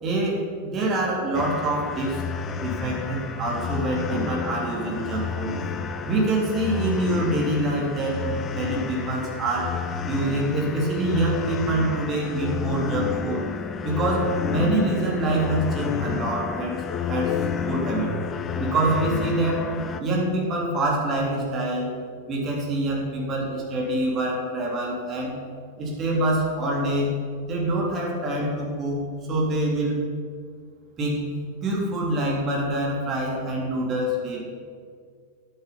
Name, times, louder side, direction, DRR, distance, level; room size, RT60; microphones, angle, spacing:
voice 1, 0.0-2.2 2.6-5.5 5.9-9.7 10.1-13.4 13.8-17.4 17.7-18.1 18.5-19.6 20.0-21.9 22.3-25.4 25.8-27.1 27.4-29.0 29.3-30.0 31.0-31.2 31.6-34.4, right 1 dB, 30° right, -2 dB, 3.1 m, -25 dB
sound 1, 1.3-20.0, left 6 dB, 25° left, 0.6 m, -30 dB
10.5 x 9.0 x 5.7 m, 2.1 s
figure-of-eight pair, 90°, 0 cm